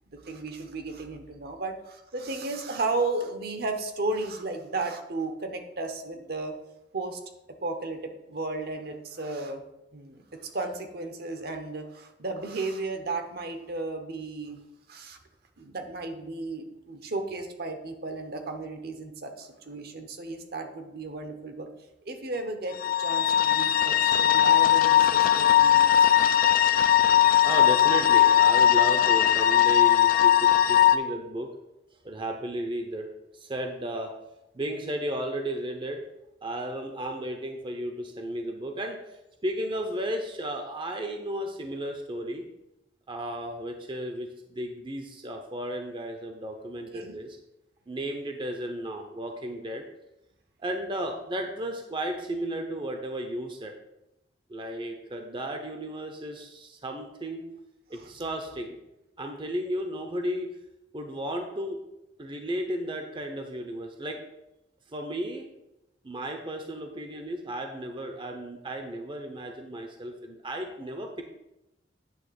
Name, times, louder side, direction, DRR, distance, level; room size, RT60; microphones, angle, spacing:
voice 1, 0.1-6.5 6.9-7.2 7.6-9.6 9.9-14.6 14.9-15.2 15.6-21.7 22.1-26.3 46.9-47.2, right 3 dB, 60° right, 6 dB, 1.0 m, -34 dB
sound 1, 22.7-31.0, left 11 dB, 50° left, 0.5 m, -19 dB
voice 2, 27.4-31.5 32.0-33.1 33.3-34.1 34.5-36.0 36.4-42.5 43.1-47.4 47.9-49.8 50.6-53.7 54.5-57.5 57.9-58.8 59.2-60.6 60.9-61.8 62.2-64.2 64.9-65.5 66.0-71.2, right 1 dB, 25° right, 4 dB, 0.7 m, -34 dB
9.4 x 3.5 x 6.9 m, 0.91 s
head